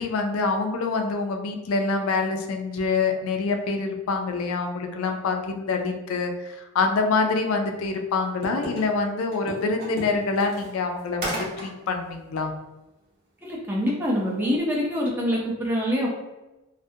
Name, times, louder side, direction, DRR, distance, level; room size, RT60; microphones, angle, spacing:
voice 1, 0.0-12.5, left 4 dB, 70° left, 4 dB, 0.3 m, -26 dB
sound 1, 8.4-8.8 9.3-11.7 12.1-12.2 13.9-14.1 14.4-14.6, right 1 dB, 45° right, 0.7 m, -33 dB
voice 2, 13.4-16.1, equal, 10° right, -4 dB, 0.4 m, -25 dB
2.3 x 2.1 x 2.6 m, 1.0 s
head